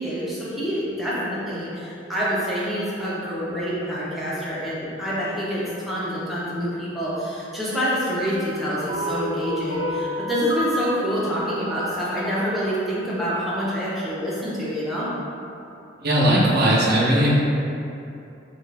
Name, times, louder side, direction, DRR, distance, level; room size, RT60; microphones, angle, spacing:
voice 1, 0.0-15.1, equal, ahead, -9 dB, 0.8 m, -26 dB
sound 1, 8.9-13.2, equal, 80° left, 0.8 m, -31 dB
voice 2, 16.0-17.3, equal, 55° right, -5 dB, 0.7 m, -18 dB
3.7 x 2.4 x 3.3 m, 2.7 s
head